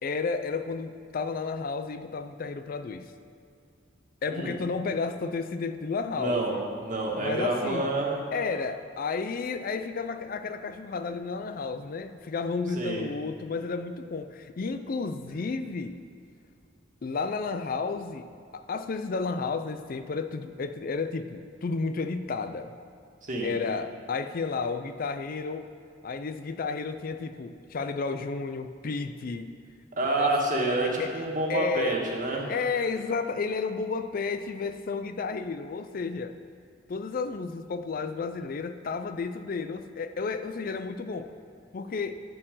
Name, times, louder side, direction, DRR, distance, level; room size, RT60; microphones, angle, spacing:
voice 1, 0.0-3.1 4.2-6.6 7.2-7.9 8.3-16.0 17.0-22.7 23.4-25.7 26.0-29.6 30.2-30.3 30.8-31.2 31.5-32.0 32.5-36.4 36.9-41.3 41.7-42.1, left 4 dB, 50° left, 10 dB, 0.4 m, -32 dB
voice 2, 6.1-8.2 12.7-13.0 23.2-23.5 30.0-32.5, right 2 dB, 45° right, -1 dB, 1.7 m, -28 dB
12.5 x 4.5 x 7.6 m, 2.4 s
head